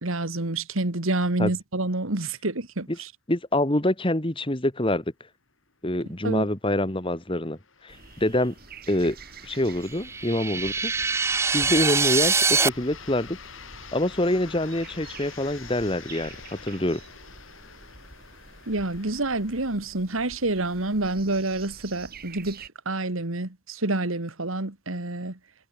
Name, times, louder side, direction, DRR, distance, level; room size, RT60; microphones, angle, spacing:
voice 1, 0.0-3.1 6.2-6.4 18.7-25.4, right 2 dB, 80° right, 2.2 m, -28 dB
voice 2, 3.3-5.0 5.8-7.6 7.8-8.5 8.9-9.2 9.4-10.9 11.5-13.4 13.9-17.0, left 1 dB, 25° left, 1.8 m, -25 dB
sound 1, 5.7-5.8 6.1-6.2 6.9-19.7, left 6 dB, 70° left, 3.2 m, -47 dB
sound 2, 7.9-22.7, right 4 dB, 45° right, 4.8 m, -48 dB
sound 3, 9.9-12.7, right 5 dB, 15° right, 0.3 m, -23 dB
head